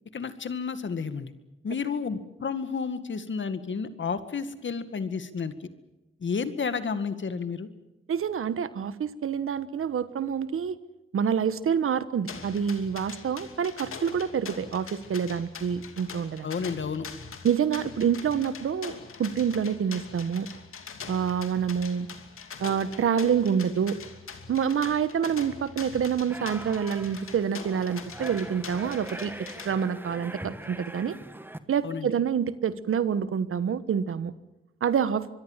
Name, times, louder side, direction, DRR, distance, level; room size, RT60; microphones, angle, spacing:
voice 1, 0.1-1.3 1.6-5.7 6.2-7.7 16.4-17.1 31.8-32.1, left 5 dB, 65° left, 11 dB, 2.1 m, -31 dB
voice 2, 8.1-10.8 11.1-16.5 17.4-20.5 21.1-22.1 22.6-24.0 24.5-29.3 29.6-31.2 31.7-34.3 34.8-35.2, right 7 dB, 85° right, 14 dB, 1.3 m, -27 dB
sound 1, 12.3-29.7, left 6 dB, 80° left, 2.8 m, -43 dB
sound 2, 26.3-31.6, right 1 dB, 10° right, 1.7 m, -42 dB
25.5 x 22.0 x 7.5 m, 1.0 s
cardioid pair, 70°, 21 cm